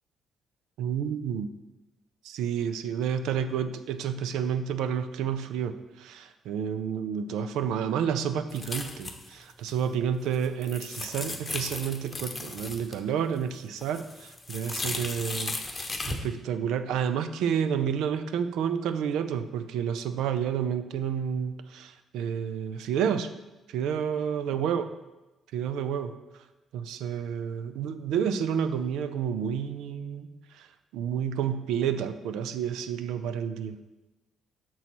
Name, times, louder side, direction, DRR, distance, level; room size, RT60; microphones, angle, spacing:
voice 1, 0.8-1.5 2.2-23.3 23.7-24.9 25.5-26.1 26.7-30.7 30.9-33.8, right 8 dB, 90° right, 11 dB, 0.4 m, -30 dB
sound 1, 8.5-9.4 9.7-9.8 10.2-13.0 13.4-16.2, left 2 dB, 25° left, 0.8 m, -36 dB
6.2 x 4.1 x 6.0 m, 1.1 s
cardioid pair, 90°, 0 cm